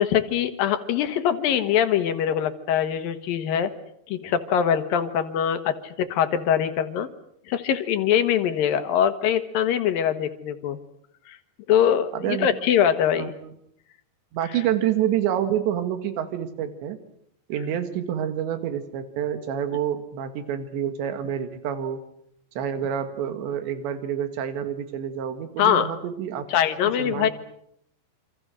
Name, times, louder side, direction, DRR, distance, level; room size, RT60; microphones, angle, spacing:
voice 1, 0.0-3.7 4.1-7.1 7.5-10.8 11.3-11.4 11.7-13.3 25.6-25.9 26.5-27.3, left 9 dB, 65° left, 9 dB, 2.7 m, -23 dB
voice 2, 12.1-12.5 13.2-13.6 14.3-17.0 17.5-22.0 22.6-26.5 27.0-27.3, right 9 dB, 75° right, 9 dB, 4.0 m, -28 dB
27.5 x 26.5 x 6.4 m, 0.71 s
omnidirectional pair, 5.2 m